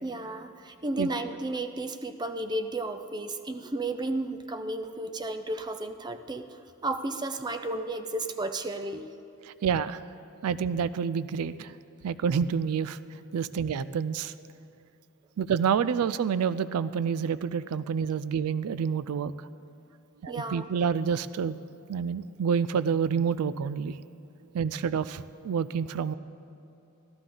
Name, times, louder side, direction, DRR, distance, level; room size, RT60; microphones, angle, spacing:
voice 1, 0.0-9.1 20.3-20.7, right 2 dB, 20° right, 8 dB, 0.4 m, -33 dB
voice 2, 9.6-10.0 10.4-11.7 12.0-13.0 13.3-14.3 15.4-19.3 20.2-21.6 21.9-24.0 24.5-26.1, right 6 dB, 80° right, 16 dB, 0.4 m, -28 dB
13.5 x 13.0 x 3.8 m, 2.8 s
head